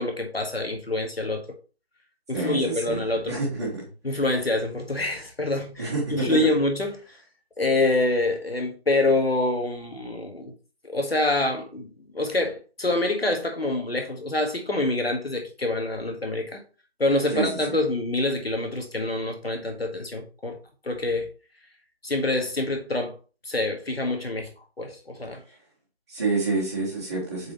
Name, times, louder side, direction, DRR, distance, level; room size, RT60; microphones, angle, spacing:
voice 1, 0.0-1.5 2.3-3.4 4.0-7.2 7.6-10.5 10.8-16.6 17.0-20.6 20.8-21.3 22.0-23.1 23.4-24.5 24.8-25.4, left 2 dB, 65° left, 1.7 m, -26 dB
voice 2, 2.3-3.0 3.3-3.9 5.8-6.4 17.3-17.8 26.1-27.5, right 3 dB, 15° right, 1.7 m, -28 dB
7.7 x 4.3 x 3.1 m
figure-of-eight pair, 165°, 32 cm